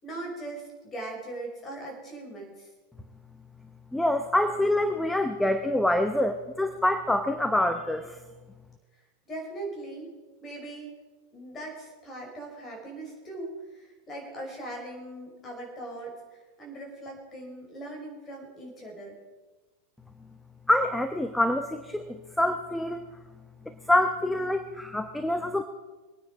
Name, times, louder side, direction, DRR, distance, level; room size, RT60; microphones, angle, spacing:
voice 1, 0.0-2.7 9.3-10.1 10.4-10.9 11.3-19.2, right 2 dB, 20° left, 0 dB, 5.2 m, -40 dB
voice 2, 3.9-8.2 20.7-23.1 23.9-25.6, left 1 dB, 5° left, 8 dB, 0.8 m, -26 dB
23.0 x 9.6 x 4.9 m, 1.2 s
figure-of-eight pair, 90°, 0 cm